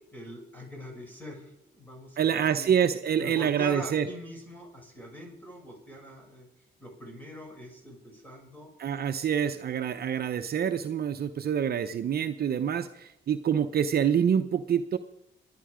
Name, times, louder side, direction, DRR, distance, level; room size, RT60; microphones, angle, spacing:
voice 1, 0.1-2.7 3.2-6.5 6.8-8.7, equal, 10° left, 1 dB, 7.2 m, -43 dB
voice 2, 2.2-4.1 8.8-15.0, right 8 dB, 50° right, 8 dB, 0.8 m, -26 dB
26.0 x 10.5 x 5.0 m, 0.81 s
cardioid pair, 90°, 20 cm